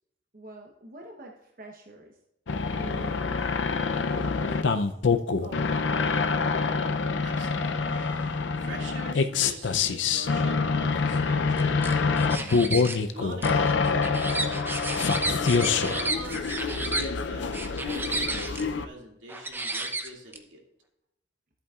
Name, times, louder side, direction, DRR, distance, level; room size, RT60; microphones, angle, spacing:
voice 1, 0.3-2.2 2.7-4.9 5.4-6.6, right 1 dB, 50° right, 1 dB, 0.9 m, -45 dB
sound 1, 2.5-18.9, left 4 dB, 75° left, 0.5 m, -26 dB
voice 2, 7.2-8.1 8.6-12.5 13.1-15.0 15.6-20.6, right 1 dB, 85° right, 0 dB, 2.3 m, -45 dB
sound 2, 11.6-13.0 13.4-17.1 17.5-18.6 19.3-20.4, right 2 dB, 10° right, 0.7 m, -32 dB
13.5 x 8.3 x 2.4 m, 0.86 s
head